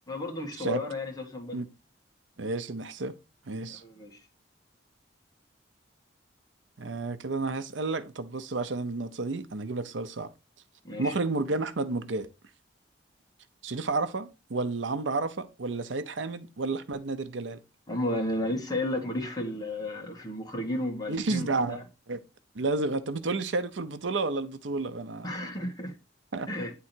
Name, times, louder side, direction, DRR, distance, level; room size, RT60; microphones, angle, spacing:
voice 1, 0.1-1.6 3.8-4.2 10.8-11.1 17.9-21.8 25.2-25.9 26.5-26.7, left 1 dB, 20° left, 1.7 m, -33 dB
voice 2, 2.4-3.1 3.5-3.8 6.8-10.3 11.0-12.3 13.6-17.6 21.1-21.8 22.1-22.2 22.5-25.3 26.3-26.5, right 3 dB, 85° right, 0.7 m, -31 dB
9.5 x 3.8 x 4.4 m
head